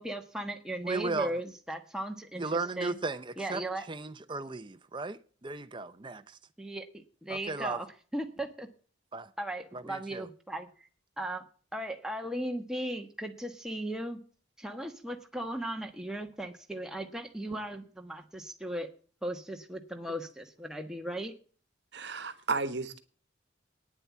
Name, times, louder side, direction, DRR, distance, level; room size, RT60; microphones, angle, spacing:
voice 1, 0.0-2.4 2.8-3.0 3.4-3.8 6.6-7.9 8.1-8.7 9.4-10.9 11.2-11.5 11.7-14.2 14.6-18.9 19.2-21.3, right 1 dB, 5° right, 1.2 m, -37 dB
voice 2, 0.8-1.3 2.4-3.6 3.9-6.4 7.3-7.8 9.1-9.3 9.7-10.3, right 3 dB, 25° right, 0.7 m, -35 dB
voice 3, 21.9-23.0, right 4 dB, 65° right, 1.2 m, -33 dB
9.7 x 7.7 x 8.5 m
head